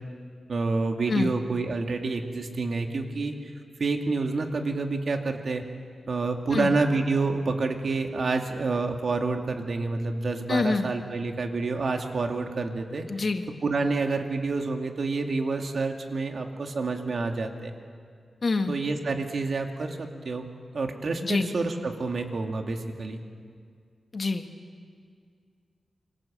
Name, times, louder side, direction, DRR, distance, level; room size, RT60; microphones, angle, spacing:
voice 1, 0.5-3.5 3.8-5.6 6.1-13.0 13.6-17.7 18.7-20.4 20.7-23.2, right 3 dB, 50° right, 4 dB, 2.4 m, -28 dB
voice 2, 10.5-10.9 13.1-13.5 18.4-18.8 21.2-21.5 24.1-24.5, left 3 dB, 45° left, 6 dB, 1.7 m, -26 dB
27.0 x 24.5 x 7.7 m, 2.1 s
wide cardioid pair, 130°, 0 cm